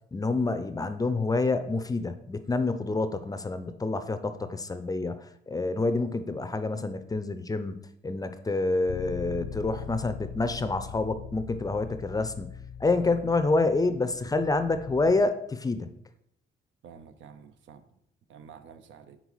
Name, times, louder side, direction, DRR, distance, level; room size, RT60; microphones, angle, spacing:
voice 1, 0.1-7.8 8.0-12.5 12.8-15.9, left 3 dB, 20° left, 10 dB, 0.5 m, -28 dB
Bass guitar, 8.9-15.1, left 7 dB, 65° left, 0.6 m, -41 dB
voice 2, 16.8-18.0 18.3-19.2, right 7 dB, 70° right, 10 dB, 0.6 m, -50 dB
5.5 x 3.7 x 4.7 m, 0.76 s
cardioid pair, 90°, 20 cm